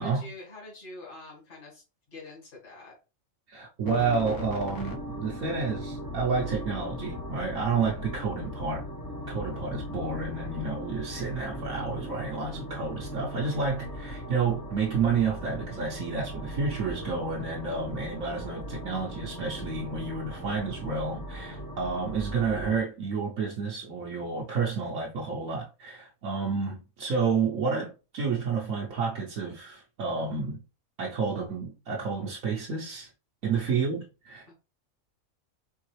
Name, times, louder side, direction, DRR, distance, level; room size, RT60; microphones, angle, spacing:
voice 1, 0.0-2.9 33.5-33.9 34.5-34.6, left 2 dB, 40° left, 2.1 m, -46 dB
voice 2, 3.5-30.6 31.0-33.1 33.4-34.5, right 5 dB, 70° right, 1.2 m, -30 dB
sound 1, 3.8-22.8, equal, 20° left, 0.8 m, -38 dB
4.6 x 3.4 x 3.1 m
omnidirectional pair, 1.4 m